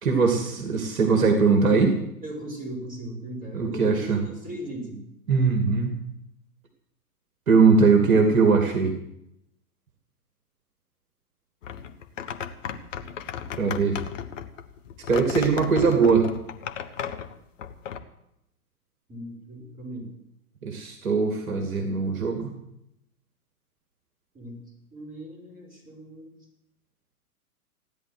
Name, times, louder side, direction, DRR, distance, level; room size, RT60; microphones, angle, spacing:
voice 1, 0.0-1.9 3.5-4.2 5.3-5.9 7.5-8.9 13.6-14.0 15.1-16.3 20.6-22.5, right 5 dB, 60° right, 4 dB, 2.7 m, -20 dB
voice 2, 2.2-5.0 19.1-20.1 24.3-24.6 24.9-26.3, right 1 dB, 20° right, -1 dB, 6.1 m, -38 dB
sound 1, 11.6-18.0, left 8 dB, 55° left, 1.4 m, -35 dB
16.0 x 10.0 x 8.1 m, 0.79 s
figure-of-eight pair, 115°, 46 cm